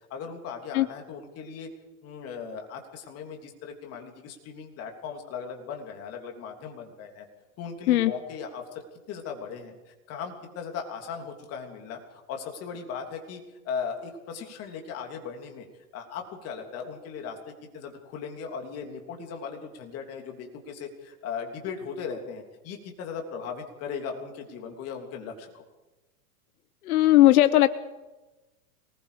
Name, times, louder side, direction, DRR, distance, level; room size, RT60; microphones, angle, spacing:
voice 1, 0.1-1.7 2.0-7.3 7.6-15.6 15.9-25.6, left 6 dB, 30° left, 3 dB, 3.3 m, -38 dB
voice 2, 26.9-27.7, left 15 dB, 75° left, 13 dB, 1.0 m, -18 dB
25.5 x 20.0 x 5.2 m, 1.1 s
supercardioid pair, 150°, 45 cm